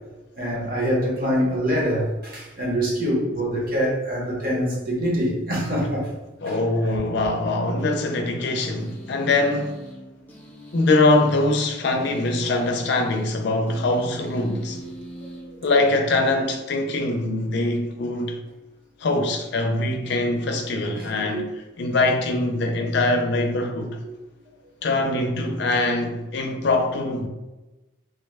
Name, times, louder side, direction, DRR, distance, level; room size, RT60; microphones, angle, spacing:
voice 1, 0.4-6.1 6.4-6.6 15.2-15.3 21.0-21.4, equal, 50° right, 1.0 m, -25 dB
voice 2, 6.4-9.7 10.7-14.8 15.6-18.4 19.0-21.5 21.8-24.0 24.8-27.3, left 2 dB, 60° left, 0.4 m, -23 dB
sound 1, 8.8-16.2, equal, 10° left, 0.5 m, -42 dB
3.4 x 2.2 x 3.2 m
head